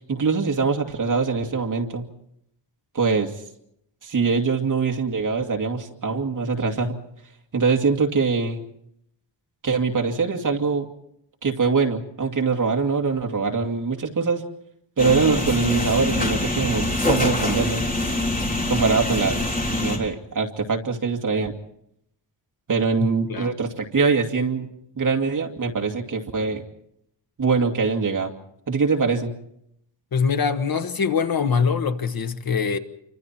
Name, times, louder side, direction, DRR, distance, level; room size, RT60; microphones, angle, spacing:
voice 1, 0.0-2.1 2.9-3.3 4.0-7.0 7.5-8.6 9.6-10.9 11.4-14.4 15.0-17.9 18.7-19.4 19.8-21.5 22.7-24.7 25.0-26.6 27.4-28.3 28.7-29.3, right 4 dB, 45° right, 2.3 m, -23 dB
sound 1, 15.0-20.0, left 1 dB, 20° left, 3.8 m, -24 dB
voice 2, 23.0-23.5 30.1-32.8, left 6 dB, 50° left, 1.4 m, -23 dB
28.5 x 25.0 x 4.4 m
wide cardioid pair, 160°, 45 cm